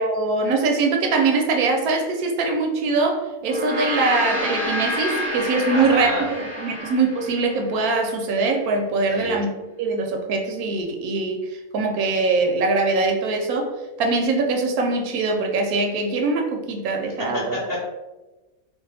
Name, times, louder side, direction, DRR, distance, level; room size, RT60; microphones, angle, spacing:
voice 1, 0.0-9.5 9.8-13.7 14.0-17.6, right 3 dB, 75° right, 2 dB, 1.0 m, -22 dB
Gong, 3.4-8.0, left 1 dB, 30° right, 0.6 m, -28 dB
voice 2, 5.7-6.3 9.1-9.4 17.3-17.9, left 1 dB, 45° left, -5 dB, 0.8 m, -28 dB
2.6 x 2.2 x 4.0 m, 1.1 s
omnidirectional pair, 1.6 m